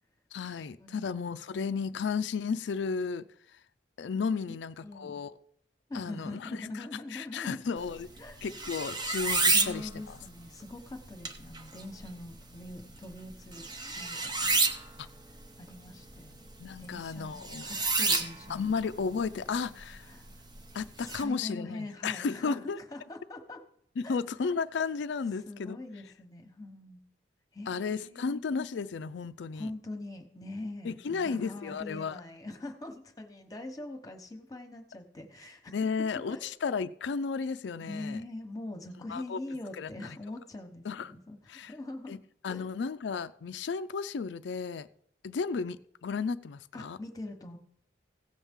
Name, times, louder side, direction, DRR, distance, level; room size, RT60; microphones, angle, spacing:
voice 1, 0.3-3.3 3.5-3.6 4.0-5.4 5.9-8.1 8.4-10.2 15.0-15.1 16.6-17.7 18.5-20.1 20.7-22.8 24.0-25.8 27.7-29.7 30.8-32.2 35.7-38.2 39.1-39.4 39.7-40.2 40.8-41.1 41.5-41.7 42.1-42.2 42.4-44.9 45.2-47.0, left 5 dB, 80° left, 0.4 m, -34 dB
voice 2, 4.8-5.2 5.9-7.7 8.2-8.4 9.5-14.9 15.6-16.5 16.8-18.7 20.1-20.3 21.0-23.6 24.0-24.2 25.5-27.0 27.5-28.3 29.5-35.9 36.3-36.5 37.8-42.2 42.5-42.6 46.7-47.6, left 2 dB, 20° left, 1.1 m, -43 dB
sound 1, 7.8-21.2, right 3 dB, 25° right, 0.7 m, -33 dB
16.5 x 7.1 x 3.7 m
head